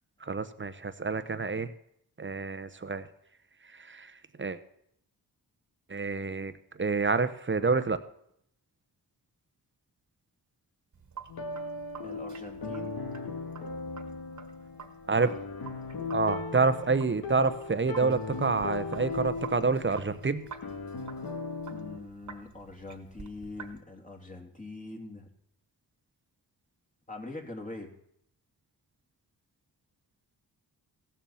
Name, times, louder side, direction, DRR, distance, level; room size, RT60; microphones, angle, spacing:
voice 1, 0.2-1.7 2.2-3.1 3.7-4.1 4.4-4.6 5.9-6.5 6.8-8.0 15.1-15.3 16.1-20.4, right 4 dB, 30° right, 11 dB, 0.9 m, -28 dB
Sink (filling or washing), 10.9-23.8, right 6 dB, 45° right, 1.6 m, -49 dB
sound 1, 11.3-22.0, left 3 dB, 65° left, 1.7 m, -38 dB
voice 2, 12.0-13.0 21.7-25.3 27.1-27.9, left 2 dB, 20° left, 1 dB, 2.7 m, -43 dB
16.0 x 7.3 x 7.1 m, 0.71 s
cardioid pair, 85°, 39 cm